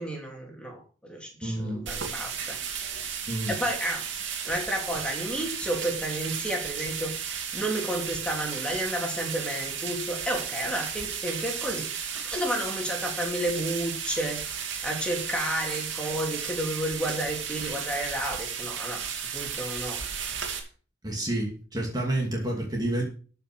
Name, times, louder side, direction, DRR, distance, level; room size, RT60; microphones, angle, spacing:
voice 1, 0.0-2.6 3.1-4.1 4.5-7.1 7.5-14.5 14.8-20.0, right 1 dB, 5° left, 0 dB, 3.1 m, -31 dB
voice 2, 1.4-1.8 3.3-3.5 21.0-23.0, right 1 dB, 20° right, -1 dB, 2.4 m, -29 dB
sound 1, 1.9-20.6, right 7 dB, 70° right, 2.7 m, -34 dB
13.5 x 5.9 x 6.2 m, 0.39 s
head